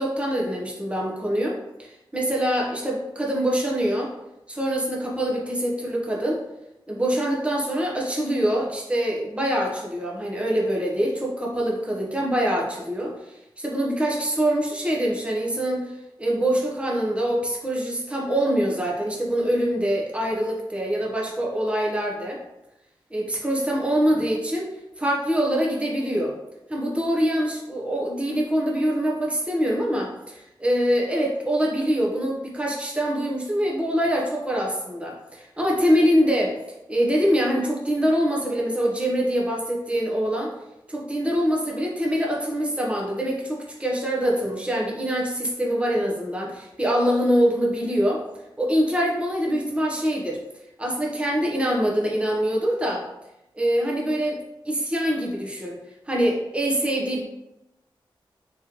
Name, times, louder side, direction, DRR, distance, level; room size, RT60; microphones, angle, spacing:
voice 1, 0.0-4.1 4.5-6.4 6.9-15.9 16.2-22.4 23.1-26.3 26.7-36.6 36.9-40.5 40.9-48.2 48.6-50.4 50.8-53.1 53.5-54.4 54.6-55.8 56.1-57.2, equal, 15° right, -2 dB, 0.8 m, -24 dB
3.8 x 3.0 x 2.9 m, 0.90 s
cardioid pair, 55°, 9 cm